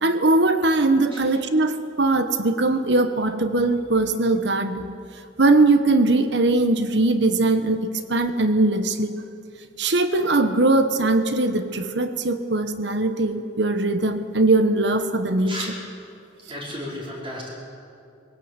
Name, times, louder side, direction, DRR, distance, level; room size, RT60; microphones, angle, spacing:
voice 1, 0.0-4.9 5.4-9.2 9.8-15.5, right 2 dB, 60° right, 9 dB, 1.2 m, -20 dB
voice 2, 16.5-17.5, equal, 25° right, -4 dB, 4.8 m, -33 dB
21.5 x 17.5 x 8.1 m, 2.5 s
head